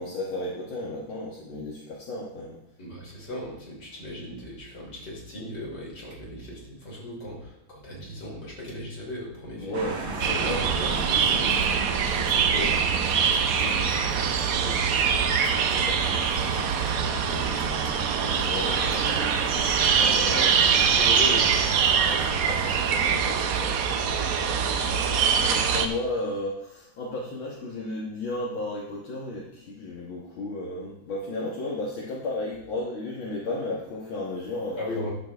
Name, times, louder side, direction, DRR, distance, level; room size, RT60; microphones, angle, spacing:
voice 1, 0.0-2.6 9.6-11.8 12.2-12.5 13.0-13.1 15.8-16.5 18.3-19.2 20.0-20.6 22.0-24.2 25.4-34.8, left 2 dB, 75° left, -4 dB, 2.3 m, -34 dB
voice 2, 2.8-9.8 12.5-15.3 16.3-17.6 18.4-19.5 19.8-21.6 34.8-35.1, left 1 dB, 50° left, -3 dB, 3.8 m, -38 dB
sound 1, 9.7-22.8, right 4 dB, 85° right, 2.5 m, -35 dB
sound 2, 10.2-25.9, right 6 dB, 65° right, 0.9 m, -24 dB
13.0 x 6.9 x 3.5 m, 0.80 s
omnidirectional pair, 2.3 m